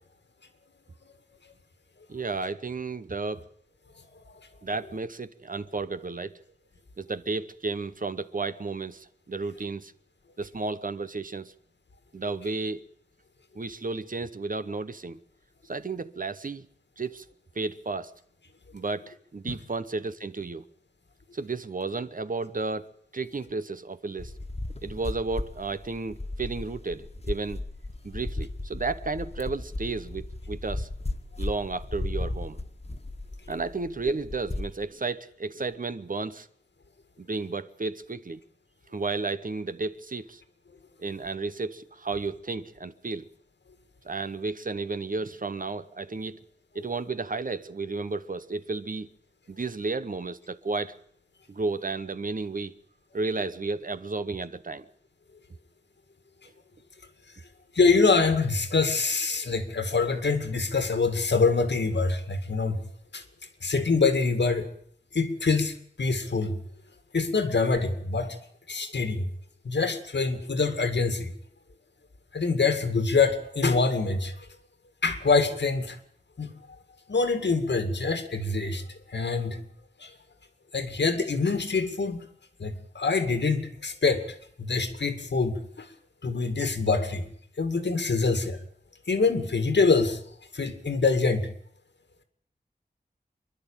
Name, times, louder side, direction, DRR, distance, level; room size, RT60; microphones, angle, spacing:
voice 1, 2.1-3.5 4.6-6.4 7.0-9.9 10.4-11.5 12.1-12.8 13.5-15.2 15.6-16.7 17.0-17.2 17.5-18.1 18.7-20.6 21.3-24.3 24.8-27.6 28.0-30.9 31.4-32.6 33.5-36.5 37.2-38.4 38.9-40.4 41.0-43.3 44.0-46.4 46.7-49.1 49.5-50.9 51.5-52.7 53.1-54.9, right 3 dB, 50° right, 0.9 m, -33 dB
sound 1, 24.2-34.9, left 2 dB, 35° left, 1.6 m, -35 dB
voice 2, 57.7-62.8 63.1-63.2 63.6-64.7 65.1-66.6 67.1-68.4 68.7-69.3 69.6-71.3 72.3-74.3 75.0-76.0 76.4-76.5 77.1-79.6 80.0-80.1 80.7-82.2 82.6-84.2 84.6-85.9 86.2-87.3 87.6-88.6 89.1-90.2 90.5-91.5, left 4 dB, 80° left, 2.2 m, -25 dB
26.5 x 11.0 x 9.0 m
wide cardioid pair, 70°, 18 cm